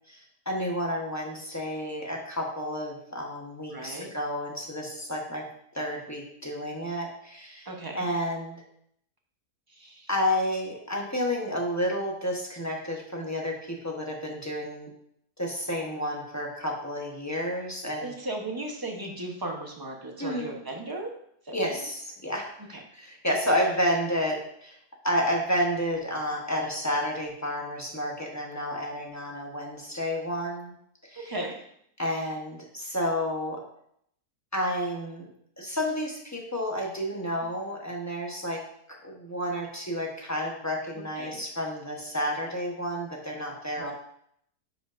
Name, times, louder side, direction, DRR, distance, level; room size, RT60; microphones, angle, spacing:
voice 1, 0.1-5.5 5.7-7.7 7.9-8.6 10.1-14.9 15.4-18.1 20.2-20.6 21.5-22.5 22.9-24.8 25.0-30.7 31.0-31.3 32.0-33.6 34.5-35.3 35.6-38.6 38.9-43.9, equal, 15° left, -1 dB, 0.9 m, -30 dB
voice 2, 3.7-4.1 7.7-8.1 9.7-10.1 18.0-21.1 21.4-21.9 22.7-22.8 31.2-31.6 41.2-41.4 43.8-43.9, right 2 dB, 20° right, 1 dB, 0.8 m, -36 dB
10.0 x 4.8 x 2.6 m, 0.70 s
omnidirectional pair, 1.7 m